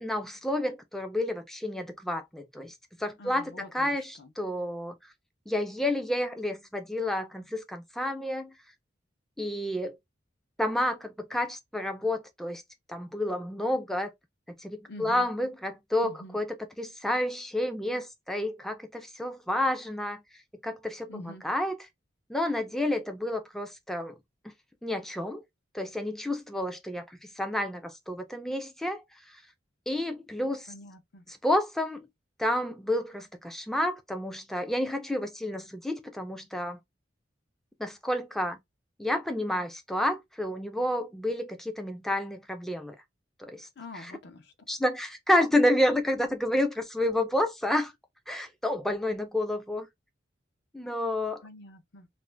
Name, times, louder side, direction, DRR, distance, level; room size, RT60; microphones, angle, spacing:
voice 1, 0.0-5.0 5.5-8.5 9.4-10.0 10.6-12.6 12.9-14.1 14.6-20.2 20.6-21.9 22.3-24.2 24.4-24.5 24.8-25.4 25.7-29.4 29.9-30.7 31.3-32.1 32.4-36.8 37.8-38.6 39.0-43.0 43.4-43.7 43.9-44.1 44.7-47.9 48.3-49.9 50.7-51.4, left 1 dB, ahead, 0.3 m, -30 dB
voice 2, 3.2-4.3 14.9-15.3 16.0-16.4 21.1-21.5 30.7-31.2 43.8-44.5 51.4-52.1, left 1 dB, 60° left, 0.6 m, -46 dB
2.5 x 2.1 x 3.1 m
head